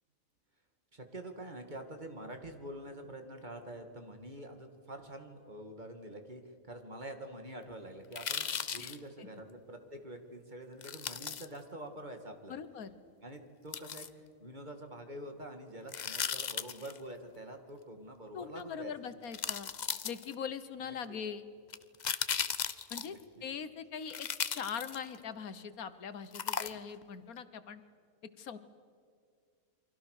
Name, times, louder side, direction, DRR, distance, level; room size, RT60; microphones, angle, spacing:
voice 1, 0.9-12.6 13.2-14.1 14.4-18.9 20.8-21.2 23.1-23.4, right 1 dB, 35° right, 5 dB, 2.2 m, -46 dB
sound 1, 8.1-9.0 10.8-11.5 13.7-14.1 15.9-17.0 18.6-18.7 19.3-20.5 21.7-23.2 24.1-25.2 26.3-27.0 27.4-27.5, left 7 dB, 45° left, 0.6 m, -36 dB
voice 2, 8.8-9.3 12.5-12.9 18.3-19.7 20.0-21.5 22.9-23.2 23.4-24.3 24.5-27.8 28.4-28.6, left 7 dB, 85° left, 12 dB, 1.6 m, -41 dB
29.0 x 24.0 x 6.6 m, 2.1 s
omnidirectional pair, 1.5 m